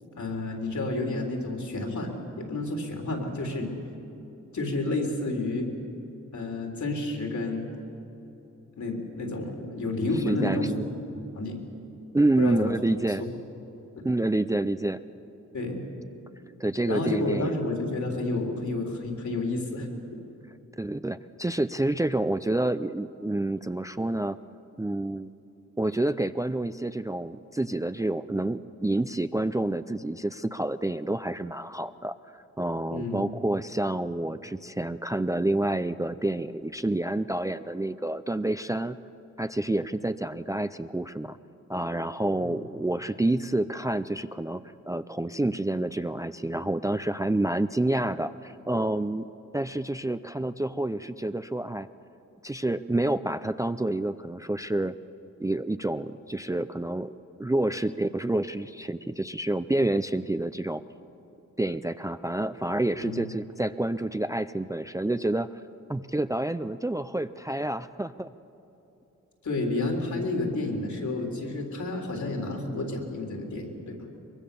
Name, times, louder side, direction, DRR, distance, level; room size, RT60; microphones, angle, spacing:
voice 1, 0.2-3.7 4.5-5.7 6.3-7.7 8.8-10.7 11.3-11.6 12.4-12.7 13.2-13.3 15.5-15.8 16.9-19.9 32.9-33.3 42.4-42.5 63.0-63.3 69.4-74.0, left 2 dB, 70° left, 1 dB, 3.7 m, -30 dB
voice 2, 10.3-10.8 12.1-13.2 14.0-15.0 16.6-17.6 20.8-24.4 24.8-25.3 25.8-39.0 39.4-41.4 41.7-49.3 49.5-51.9 52.4-54.9 55.4-57.1 57.4-60.8 61.6-65.6 65.9-68.3, right 1 dB, 10° right, 12 dB, 0.4 m, -28 dB
23.5 x 22.5 x 6.9 m, 2.9 s
wide cardioid pair, 105°, 30 cm